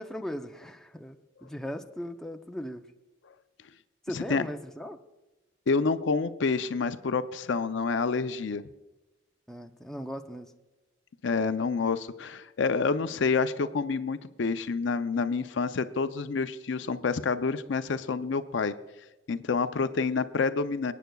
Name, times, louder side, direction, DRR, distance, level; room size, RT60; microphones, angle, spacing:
voice 1, 0.0-2.8 4.1-5.0 9.5-10.5, equal, 5° left, 3 dB, 0.5 m, -38 dB
voice 2, 4.1-4.4 5.7-8.6 11.2-18.7 19.3-20.9, left 4 dB, 65° left, 11 dB, 0.5 m, -28 dB
25.5 x 9.2 x 2.3 m, 1.1 s
head